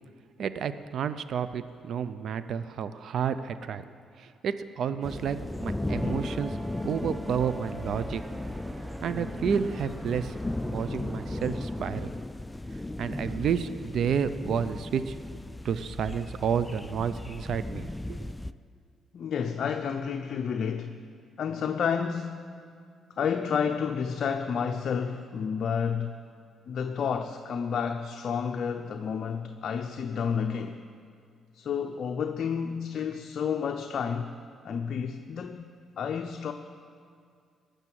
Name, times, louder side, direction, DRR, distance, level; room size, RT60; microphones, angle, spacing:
voice 1, 0.4-3.8 4.2-6.6 6.8-8.2 9.0-10.3 10.7-12.1 13.0-15.1 15.6-18.3, right 7 dB, 65° right, 13 dB, 0.5 m, -30 dB
sound 1, 5.0-18.5, left 1 dB, 10° left, 0.4 m, -36 dB
sound 2, 5.9-11.9, right 1 dB, 15° right, 0.8 m, -45 dB
voice 2, 19.1-21.0 21.4-22.5 23.2-26.2 26.7-30.8 31.5-34.3 34.6-35.7 36.0-36.5, left 6 dB, 60° left, 5 dB, 0.6 m, -30 dB
18.0 x 6.7 x 7.6 m, 2.2 s
cardioid pair, 90°, 0 cm